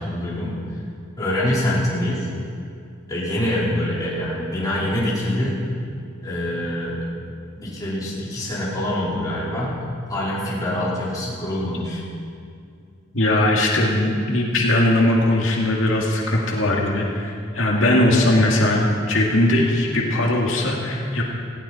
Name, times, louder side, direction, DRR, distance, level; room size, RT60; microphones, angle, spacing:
voice 1, 0.0-0.8 1.2-2.3 3.1-5.7 6.2-7.1 7.6-9.8 10.1-12.0, left 1 dB, 20° left, -8 dB, 4.3 m, -25 dB
voice 2, 13.1-21.2, left 1 dB, 85° left, -2 dB, 2.1 m, -19 dB
18.5 x 15.5 x 4.3 m, 2.4 s
head